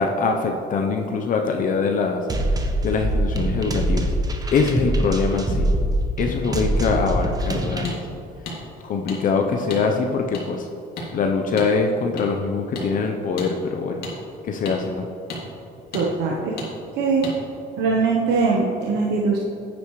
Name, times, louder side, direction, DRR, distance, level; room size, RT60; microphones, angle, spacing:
voice 1, 0.0-2.2 2.5-4.1 4.5-5.7 6.2-8.0 8.8-10.7 11.1-14.0 14.4-15.1, left 4 dB, 55° left, 3 dB, 0.8 m, -23 dB
sound 1, 2.3-7.9, right 1 dB, 20° right, 1.0 m, -24 dB
sound 2, 7.8-8.0 8.5-8.6 9.1-9.2 9.7-9.8 10.3-10.4 11.0-11.1 11.6-11.7 12.2-12.3 12.7-12.9 13.4-13.5 14.0-14.1 14.6-14.8 15.3-15.4 15.9-16.1 16.6-16.7 17.2-17.4, left 2 dB, 70° left, 2.4 m, -32 dB
voice 2, 15.9-16.5 17.0-17.2 17.8-19.4, right 4 dB, 80° right, -3 dB, 1.2 m, -21 dB
10.5 x 9.1 x 3.2 m, 2.7 s
cardioid pair, 110°, 17 cm